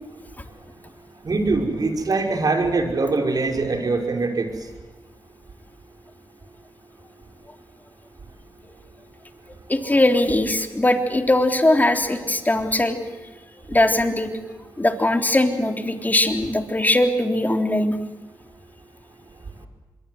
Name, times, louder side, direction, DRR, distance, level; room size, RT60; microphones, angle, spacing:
voice 1, 1.2-4.5, right 3 dB, 55° right, 3 dB, 5.5 m, -22 dB
voice 2, 9.7-13.0 13.7-18.0, left 1 dB, 20° left, 5 dB, 3.6 m, -20 dB
26.0 x 22.5 x 8.0 m, 1.2 s
cardioid pair, 50°, 8 cm